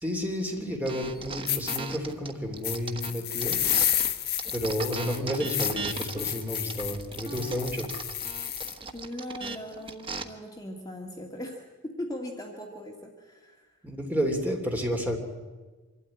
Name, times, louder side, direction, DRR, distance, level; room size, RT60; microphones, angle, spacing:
voice 1, 0.0-3.6 4.5-7.9 13.8-15.2, equal, 10° right, 2 dB, 3.0 m, -31 dB
sound 1, 0.8-4.1 4.4-10.2, right 4 dB, 25° right, 1.2 m, -38 dB
sound 2, 1.1-1.2 1.5-1.8 2.6-8.8, left 10 dB, 50° left, 1.6 m, -30 dB
voice 2, 8.9-13.8, left 1 dB, 15° left, 1 dB, 1.9 m, -39 dB
25.0 x 13.0 x 9.8 m, 1.3 s
head